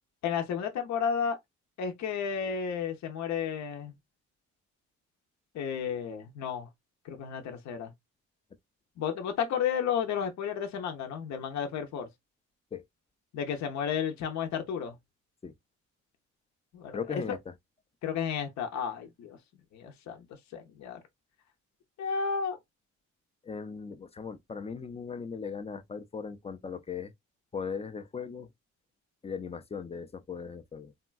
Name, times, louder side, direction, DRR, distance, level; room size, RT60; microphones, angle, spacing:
voice 1, 0.2-1.4 1.8-3.9 5.5-6.7 7.0-7.9 9.0-12.1 13.3-15.0 16.7-17.0 18.0-19.4 19.7-20.3 20.5-21.0 22.0-22.6, left 7 dB, 65° left, 0.6 m, -32 dB
voice 2, 16.9-17.5 23.4-27.1 27.5-28.5 29.2-30.9, left 6 dB, 20° left, 0.4 m, -38 dB
3.6 x 2.2 x 2.3 m
cardioid pair, 90°, 30 cm